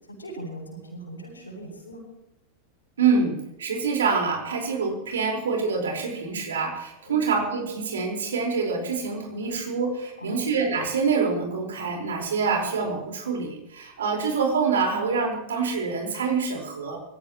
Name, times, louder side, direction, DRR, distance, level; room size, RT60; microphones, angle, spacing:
voice 1, 0.1-2.0 7.0-7.3 10.2-10.4, right 1 dB, 75° left, -3 dB, 7.6 m, -39 dB
voice 2, 3.0-17.0, right 5 dB, 65° right, 1 dB, 4.6 m, -26 dB
26.0 x 15.5 x 3.1 m, 0.89 s
figure-of-eight pair, 90°, 0 cm